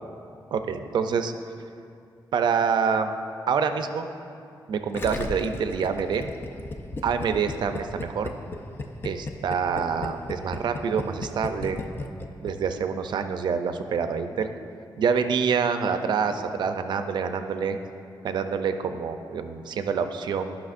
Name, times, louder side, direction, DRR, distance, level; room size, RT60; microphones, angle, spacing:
voice 1, 0.5-1.3 2.3-3.1 3.5-4.1 4.7-6.3 7.0-8.3 9.0-11.8 12.4-14.5 15.0-17.8 18.2-20.6, right 6 dB, 70° right, 8 dB, 0.5 m, -26 dB
Gurgling, 4.9-12.8, left 2 dB, 30° left, 0.5 m, -35 dB
14.0 x 5.7 x 2.5 m, 2.5 s
wide cardioid pair, 160°, 8 cm